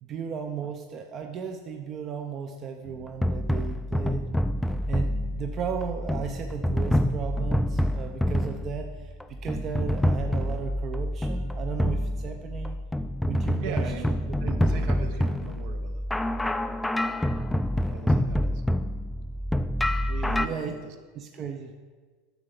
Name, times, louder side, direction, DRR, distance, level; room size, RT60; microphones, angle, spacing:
voice 1, 0.0-4.3 4.9-12.8 13.3-14.2 20.4-20.7 21.1-21.7, right 7 dB, 40° right, 4 dB, 0.6 m, -35 dB
sound 1, 2.9-20.5, equal, 5° left, 0.4 m, -27 dB
voice 2, 13.6-16.0 17.9-18.6 20.1-20.9, right 5 dB, 65° right, 6 dB, 1.0 m, -39 dB
10.5 x 6.6 x 3.8 m, 1.5 s
hypercardioid pair, 95°, 0 cm